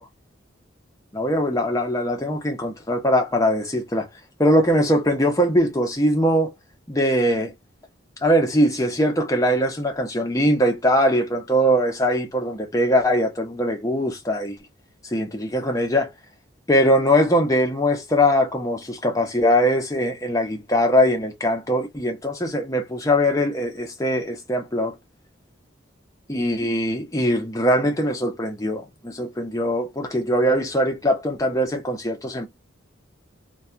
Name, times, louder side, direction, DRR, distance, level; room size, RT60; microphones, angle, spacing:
voice 1, 1.1-4.1 4.4-6.5 6.9-7.5 8.2-14.6 15.0-16.1 16.7-24.9 26.3-32.5, equal, 15° left, 0.6 m, -21 dB
2.3 x 2.2 x 2.7 m
head